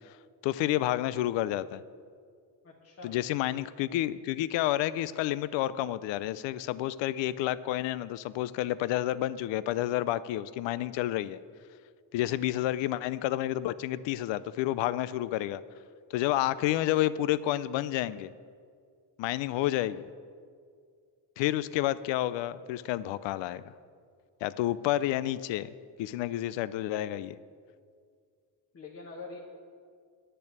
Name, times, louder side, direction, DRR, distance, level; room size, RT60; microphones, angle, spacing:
voice 1, 0.4-1.8 3.0-11.4 12.1-15.6 16.1-18.3 19.2-20.0 21.4-23.6 24.4-25.7 26.0-27.4, left 14 dB, 75° left, 17 dB, 0.6 m, -30 dB
voice 2, 2.6-3.2 12.3-12.6 19.5-19.6 28.7-29.4, left 3 dB, 35° left, -2 dB, 1.4 m, -45 dB
10.0 x 6.8 x 8.8 m, 2.1 s
cardioid pair, 115°, 44 cm